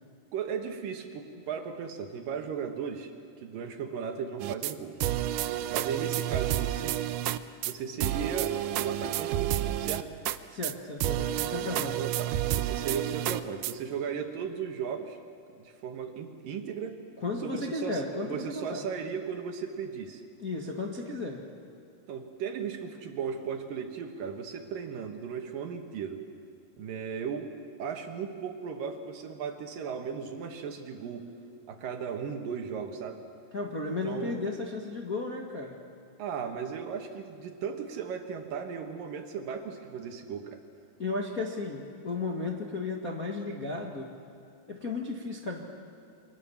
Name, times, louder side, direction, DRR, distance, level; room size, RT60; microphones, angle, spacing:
voice 1, 0.3-3.1 3.4-5.1 5.7-7.0 7.6-10.1 12.0-15.2 15.6-17.0 17.4-20.2 22.1-26.2 26.8-27.5 27.8-31.3 31.7-33.2 34.0-34.3 36.2-40.6, right 6 dB, 65° right, 5 dB, 2.9 m, -36 dB
sound 1, 4.4-4.7 5.0-7.4 7.6-7.7 8.0-10.4 10.6-10.7 11.0-13.7, right 13 dB, 85° right, 1.8 m, -30 dB
voice 2, 10.5-12.0 17.2-18.8 20.4-21.4 33.5-35.8 41.0-44.1 44.7-45.6, left 3 dB, 40° left, -1 dB, 1.3 m, -34 dB
29.0 x 25.0 x 7.2 m, 2.6 s
omnidirectional pair, 4.6 m